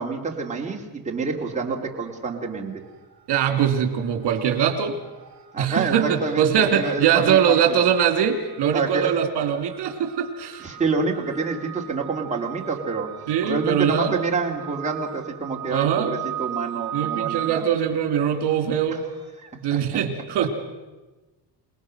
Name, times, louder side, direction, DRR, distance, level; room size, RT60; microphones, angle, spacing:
voice 1, 0.0-2.7 5.5-7.8 8.7-9.1 10.6-13.1 13.4-17.7 19.4-19.8, right 4 dB, 15° right, -1 dB, 2.4 m, -27 dB
sound 1, 1.7-2.4 2.7-19.3, right 11 dB, 40° right, 3.8 m, -39 dB
voice 2, 3.3-4.9 5.6-10.6 13.3-14.1 15.7-16.1 16.9-19.0 19.6-20.5, right 8 dB, 75° right, 6 dB, 2.9 m, -22 dB
28.0 x 19.0 x 6.2 m, 1.2 s
cardioid pair, 180°, 41 cm